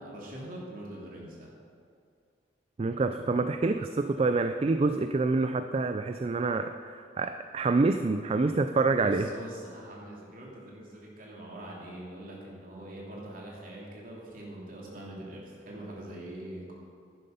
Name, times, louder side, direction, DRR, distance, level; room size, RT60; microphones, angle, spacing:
voice 1, 0.0-1.5 8.9-16.7, right 1 dB, 50° right, -3 dB, 2.7 m, -43 dB
voice 2, 2.8-9.3, right 3 dB, 30° right, 8 dB, 0.3 m, -27 dB
11.0 x 10.5 x 5.4 m, 2.4 s
head